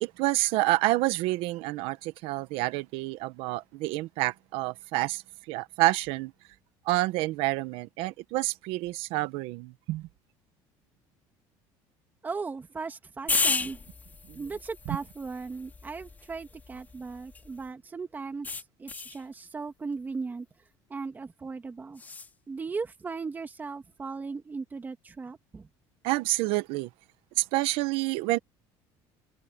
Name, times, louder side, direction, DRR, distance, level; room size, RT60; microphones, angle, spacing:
voice 1, 0.0-5.2 5.5-6.3 6.8-10.1 14.3-14.4 14.9-15.0 26.0-26.9 27.4-28.4, right 18 dB, 75° right, 1.2 m, -28 dB
voice 2, 12.2-13.8 14.3-20.5 20.9-22.0 22.5-25.7, right 4 dB, 20° right, 2.5 m, -37 dB
sound 1, 13.3-17.7 18.4-19.2 22.0-22.3, left 4 dB, 15° left, 2.7 m, -33 dB
cardioid pair, 140°, 10 cm